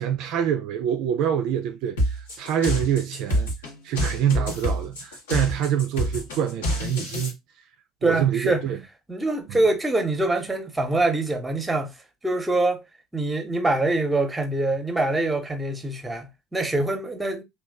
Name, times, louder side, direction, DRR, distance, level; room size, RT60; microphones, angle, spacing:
voice 1, 0.0-3.5 3.8-7.3 8.0-8.8 9.5-9.6, right 9 dB, 55° right, 0.3 m, -25 dB
sound 1, 2.0-7.3, equal, 75° left, 1.0 m, -27 dB
voice 2, 8.0-8.7 9.1-11.9 12.2-12.8 13.1-17.4, right 2 dB, 10° right, 0.8 m, -24 dB
3.0 x 2.3 x 3.5 m
figure-of-eight pair, 65°, 0 cm